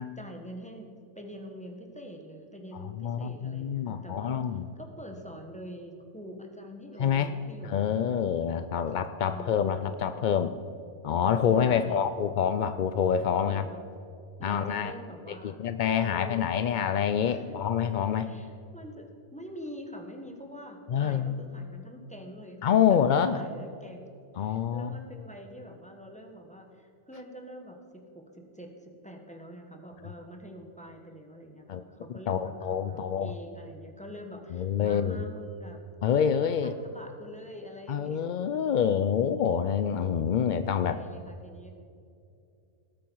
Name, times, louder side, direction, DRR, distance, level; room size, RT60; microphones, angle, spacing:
voice 1, 0.1-4.4 4.8-7.9 8.5-9.7 11.5-12.1 13.4-13.8 14.4-15.6 16.1-16.7 17.2-17.6 18.2-24.1 24.4-32.5 32.9-35.8 36.1-38.2 40.8-41.7, equal, 5° left, 3 dB, 1.2 m, -45 dB
voice 2, 3.0-4.7 7.0-7.3 7.6-10.5 11.0-13.6 14.4-14.9 15.3-18.3 20.9-21.4 22.6-23.4 24.4-25.0 31.7-31.8 32.3-33.3 34.5-35.2 36.0-36.7 37.9-41.0, left 8 dB, 65° left, 11 dB, 0.4 m, -27 dB
19.0 x 8.6 x 4.6 m, 2.5 s
omnidirectional pair, 1.3 m